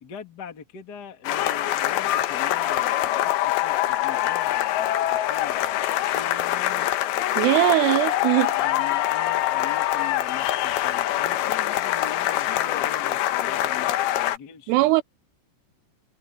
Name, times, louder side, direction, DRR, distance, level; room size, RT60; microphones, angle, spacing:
voice 1, 0.0-2.9 3.2-6.9 8.6-14.9, left 6 dB, 40° left, 1.4 m, -42 dB
sound 1, 1.2-14.4, left 13 dB, 70° left, 2.7 m, -24 dB
voice 2, 7.4-8.6 14.7-15.0, right 19 dB, 85° right, 2.7 m, -20 dB
omnidirectional pair, 5.1 m